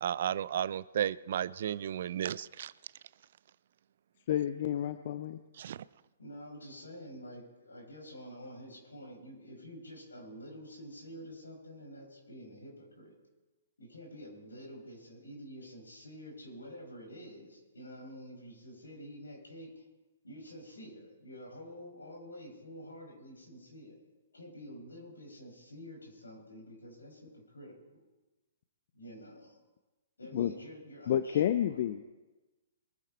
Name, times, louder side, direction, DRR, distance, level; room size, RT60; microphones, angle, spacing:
voice 1, 0.0-2.7 5.6-5.8, right 10 dB, 55° right, 21 dB, 0.4 m, -33 dB
voice 2, 4.3-5.4 30.3-30.5 31.1-32.0, left 11 dB, 50° left, 11 dB, 0.6 m, -30 dB
voice 3, 6.2-13.1 13.8-19.8 20.2-24.0 24.3-28.0 28.9-29.6 30.2-31.8, equal, 80° left, 0 dB, 6.1 m, -48 dB
22.5 x 10.5 x 4.4 m, 1.1 s
figure-of-eight pair, 120°, 0 cm